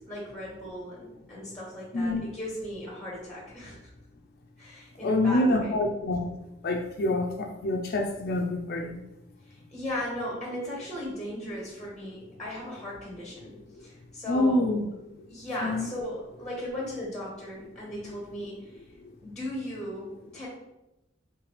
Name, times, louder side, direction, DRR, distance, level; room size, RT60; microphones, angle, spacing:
voice 1, 0.0-3.8 4.6-5.7 9.5-14.7 15.3-18.7 19.2-20.5, left 1 dB, 5° left, -4 dB, 1.1 m, -37 dB
voice 2, 5.0-6.3 6.6-9.0 14.3-14.8 15.6-15.9, left 1 dB, 55° left, 2 dB, 0.4 m, -26 dB
5.0 x 3.2 x 3.1 m, 0.92 s
head